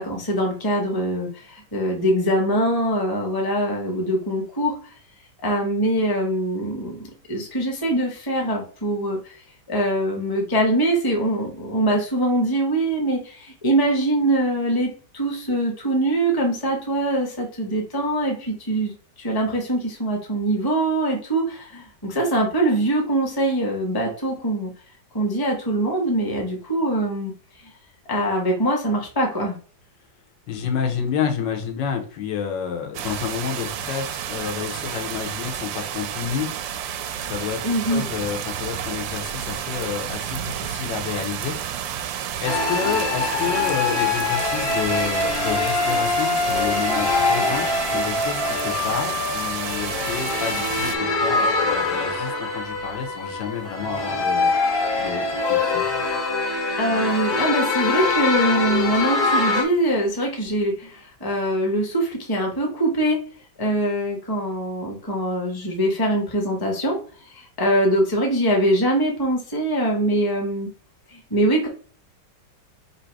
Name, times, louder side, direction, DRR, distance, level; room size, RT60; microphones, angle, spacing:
voice 1, 0.0-4.7 5.4-7.0 7.3-9.2 9.7-24.7 25.1-27.3 28.1-29.5 37.6-38.0 56.8-63.2 63.6-67.0 67.3-70.7 71.1-71.7, right 1 dB, 15° left, 0 dB, 0.8 m, -23 dB
voice 2, 30.5-36.5 37.2-41.6 42.4-54.5 55.0-55.8, left 7 dB, 80° left, 3 dB, 1.5 m, -29 dB
sound 1, 32.9-51.0, right 9 dB, 90° right, 1.3 m, -31 dB
sound 2, 42.5-59.6, left 3 dB, 65° left, 1.5 m, -24 dB
3.7 x 2.7 x 4.5 m, 0.41 s
omnidirectional pair, 2.0 m